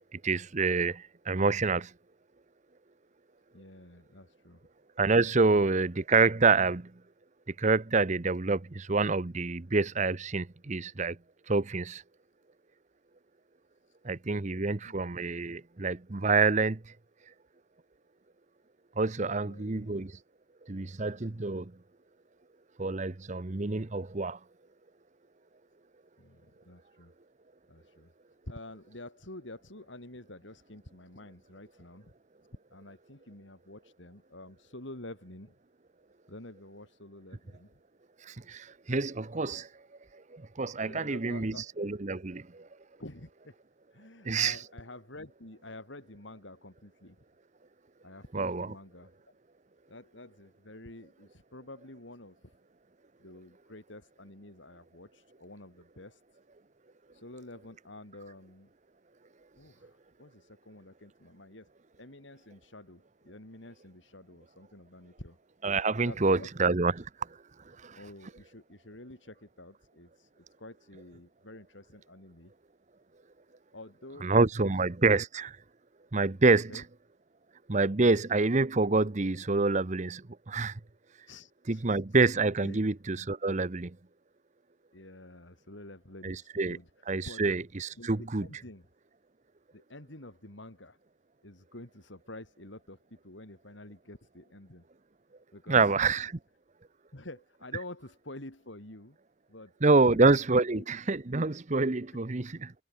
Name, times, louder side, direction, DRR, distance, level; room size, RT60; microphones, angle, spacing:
voice 1, 0.1-1.9 5.0-6.9 7.6-11.2 11.5-12.0 14.0-16.8 19.0-20.1 20.7-21.7 22.8-24.4 38.2-39.7 40.1-42.7 44.2-44.6 48.3-48.7 65.6-67.1 67.8-68.0 74.2-75.5 76.1-76.8 77.7-80.8 81.7-84.0 86.2-86.8 87.1-88.5 95.7-96.3 99.8-102.7, right 3 dB, 40° right, 0.8 m, -27 dB
voice 2, 3.5-4.6 5.4-5.7 14.8-15.0 19.3-20.0 26.2-27.1 27.7-28.1 28.5-32.1 32.7-35.6 36.3-37.8 40.8-41.6 43.0-43.6 43.9-47.2 48.0-49.1 49.9-52.5 53.2-56.2 57.1-58.7 59.6-61.7 62.0-65.4 66.0-66.5 67.9-72.5 73.7-74.7 76.7-76.8 81.3-82.0 82.6-82.8 84.9-86.9 87.2-87.4 88.0-88.9 89.7-91.0 91.4-94.8 95.5-96.0 97.1-99.2 99.5-99.7 100.0-100.3 100.7-100.9, left 1 dB, 70° left, 3.8 m, -48 dB
head